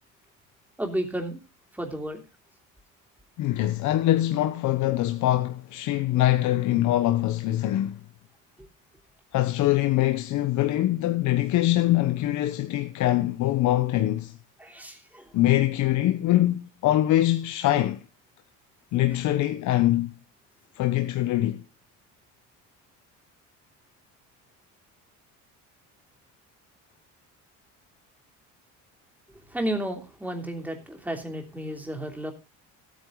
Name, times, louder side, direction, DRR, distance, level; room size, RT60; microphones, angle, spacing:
voice 1, 0.8-1.4 1.7-2.2 14.6-15.3 29.5-32.3, right 1 dB, 5° right, 3.1 m, -32 dB
voice 2, 3.4-8.0 9.3-14.4 15.3-18.1 18.9-20.2 20.7-21.6, left 14 dB, 70° left, 1.1 m, -23 dB
15.5 x 9.2 x 3.9 m
cardioid pair, 120°, 31 cm